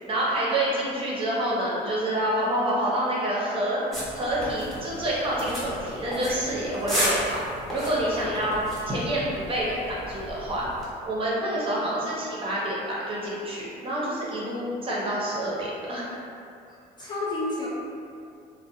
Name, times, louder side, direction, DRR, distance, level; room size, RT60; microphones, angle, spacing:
voice 1, 0.1-3.8 4.1-7.4 7.7-8.6 8.9-10.7 11.1-16.1, right 1 dB, 30° right, -6 dB, 0.6 m, -27 dB
sound 1, 3.9-10.9, equal, ahead, 0.8 m, -33 dB
voice 2, 8.1-8.5 11.7-11.8 16.7-17.7, left 2 dB, 25° left, -6 dB, 0.5 m, -32 dB
2.4 x 2.1 x 2.6 m, 2.5 s
cardioid pair, 110°, 17 cm